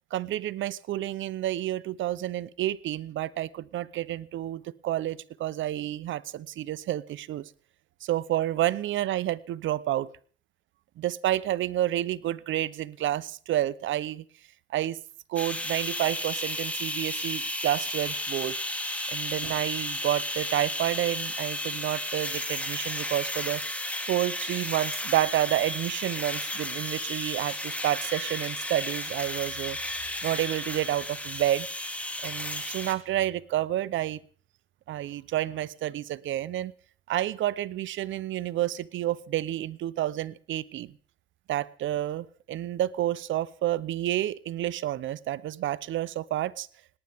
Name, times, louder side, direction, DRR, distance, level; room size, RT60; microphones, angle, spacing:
voice 1, 0.1-7.5 8.0-10.1 11.0-14.2 14.7-15.0 15.3-18.5 19.1-23.6 24.1-29.8 30.2-31.7 32.2-34.2 34.9-36.7 37.1-40.9 41.5-46.7, right 13 dB, 75° right, 19 dB, 0.7 m, -29 dB
sound 1, 15.4-32.9, left 1 dB, 5° left, 2.3 m, -33 dB
18.5 x 18.5 x 3.5 m, 0.43 s
cardioid pair, 90°, 20 cm